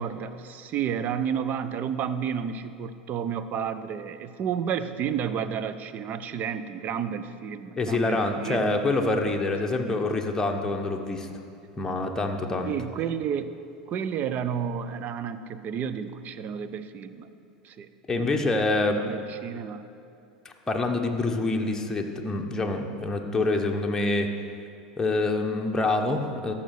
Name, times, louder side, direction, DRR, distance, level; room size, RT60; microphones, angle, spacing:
voice 1, 0.0-8.8 9.8-10.1 12.6-13.5 13.9-17.3 17.6-18.5 18.9-19.9, right 7 dB, 40° right, 11 dB, 0.6 m, -31 dB
voice 2, 7.8-11.3 11.8-12.7 18.1-19.0 20.4-24.3 25.0-26.5, left 2 dB, 15° left, 2 dB, 1.2 m, -26 dB
14.0 x 5.8 x 6.5 m, 2.5 s
hypercardioid pair, 90°, 4 cm